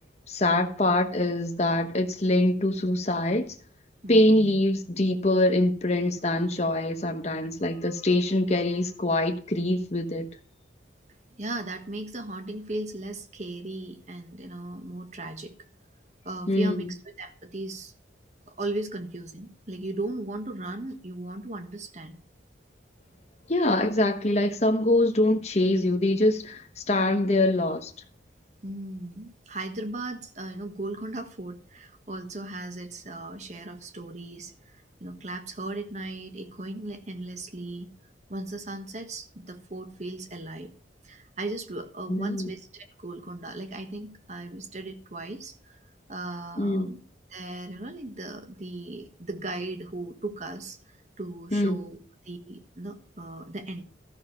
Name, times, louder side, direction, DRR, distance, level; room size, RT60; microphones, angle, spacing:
voice 1, 0.3-3.5 4.1-10.3 16.5-16.9 23.5-27.9 42.1-42.5 46.6-46.9 51.5-51.8, left 1 dB, 35° left, 1.2 m, -24 dB
voice 2, 4.0-4.5 11.4-15.5 16.2-16.9 17.2-17.9 18.5-22.2 28.6-37.9 38.3-40.7 41.0-45.8 46.1-47.0 47.3-50.8 51.2-52.0 52.2-53.8, right 2 dB, 40° right, 1.3 m, -37 dB
13.0 x 6.6 x 5.6 m
head